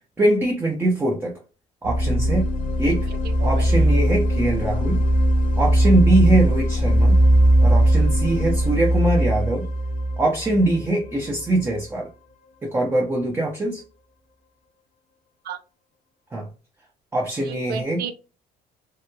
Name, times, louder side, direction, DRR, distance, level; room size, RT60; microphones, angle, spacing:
voice 1, 0.2-1.3 1.8-2.5 2.8-3.1 3.4-5.0 5.6-7.2 7.6-9.7 10.2-12.1 12.6-13.8 16.3-16.5 17.1-18.0, right 1 dB, 15° right, 0 dB, 0.5 m, -22 dB
sound 1, 1.8-11.6, right 1 dB, 50° left, 0.6 m, -19 dB
voice 2, 17.5-18.1, right 6 dB, 70° right, 8 dB, 0.5 m, -32 dB
2.9 x 2.1 x 2.2 m, 0.33 s
cardioid pair, 110°, 17 cm